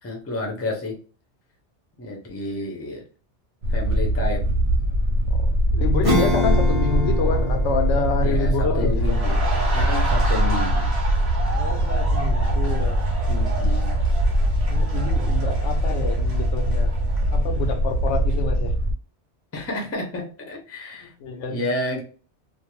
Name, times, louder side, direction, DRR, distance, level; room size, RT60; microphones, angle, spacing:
voice 1, 0.0-0.9 2.0-3.0 3.7-4.6 8.2-9.4 9.7-10.9 13.3-14.0 19.5-21.1 21.5-22.0, left 1 dB, 20° left, 0.4 m, -30 dB
sound 1, 3.6-18.9, right 1 dB, 80° right, 0.9 m, -22 dB
voice 2, 5.7-9.2 11.5-13.0 14.7-16.9 17.3-18.7 21.0-21.7, left 4 dB, 85° left, 0.9 m, -28 dB
Acoustic guitar / Strum, 6.0-12.0, equal, 25° right, 0.6 m, -29 dB
sound 2, 9.0-17.8 18.1-18.3, right 2 dB, 40° right, 1.0 m, -33 dB
2.5 x 2.0 x 2.9 m
omnidirectional pair, 1.2 m